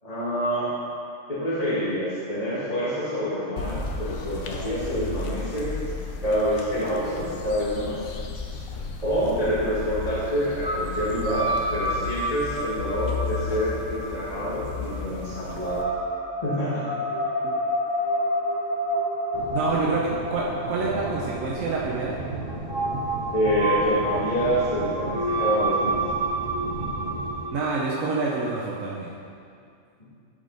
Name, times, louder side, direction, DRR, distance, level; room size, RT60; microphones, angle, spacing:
voice 1, 0.0-0.7 1.3-5.8 6.2-8.0 9.0-15.8 16.4-16.9 23.3-26.0 30.0-30.1, equal, 30° left, -11 dB, 2.0 m, -27 dB
sound 1, 3.6-15.8, left 4 dB, 85° left, 1.2 m, -34 dB
sound 2, 10.6-28.8, right 1 dB, 20° right, 0.8 m, -30 dB
sound 3, 19.3-27.5, right 2 dB, 55° right, 1.1 m, -36 dB
voice 2, 19.5-22.2 27.5-29.1, right 3 dB, 75° right, -4 dB, 1.2 m, -27 dB
12.5 x 5.1 x 4.0 m, 2.3 s
omnidirectional pair, 1.4 m